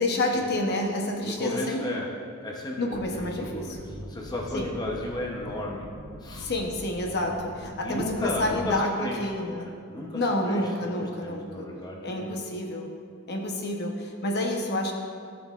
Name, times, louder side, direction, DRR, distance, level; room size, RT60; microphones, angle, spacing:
voice 1, 0.0-2.0 2.8-3.8 4.5-4.7 6.4-9.7 10.1-11.7 12.0-12.9 13.3-14.9, left 1 dB, 50° left, 1 dB, 0.8 m, -29 dB
voice 2, 1.2-2.1 2.4-5.9 6.2-6.5 7.8-9.3 9.6-12.4, left 1 dB, 20° left, -2 dB, 0.7 m, -34 dB
sound 1, 2.9-8.7, equal, 65° right, 0.8 m, -43 dB
14.0 x 6.2 x 2.4 m, 2.2 s
head